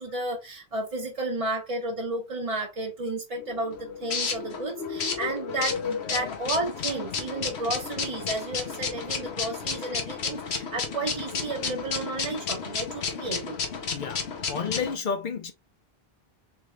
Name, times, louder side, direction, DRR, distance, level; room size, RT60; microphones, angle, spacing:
voice 1, 0.0-13.6, right 2 dB, 40° right, 0.7 m, -32 dB
sound 1, 3.4-14.9, left 5 dB, 85° left, 1.2 m, -32 dB
voice 2, 13.9-14.2 14.5-15.5, left 5 dB, 55° left, 0.7 m, -30 dB
3.5 x 3.5 x 3.1 m
omnidirectional pair, 1.1 m